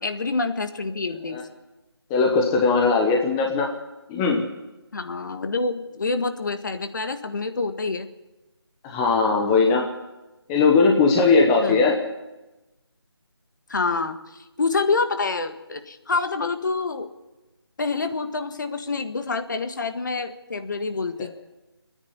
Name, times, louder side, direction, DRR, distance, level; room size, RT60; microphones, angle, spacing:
voice 1, 0.0-1.4 4.9-8.1 11.6-11.9 13.7-17.1 17.8-21.3, left 3 dB, 45° left, 8 dB, 1.7 m, -27 dB
voice 2, 2.1-3.7 4.1-4.4 8.8-9.9 10.5-12.0, left 4 dB, 10° left, 1 dB, 1.0 m, -19 dB
28.0 x 10.0 x 9.6 m, 1.1 s
figure-of-eight pair, 165°, 13 cm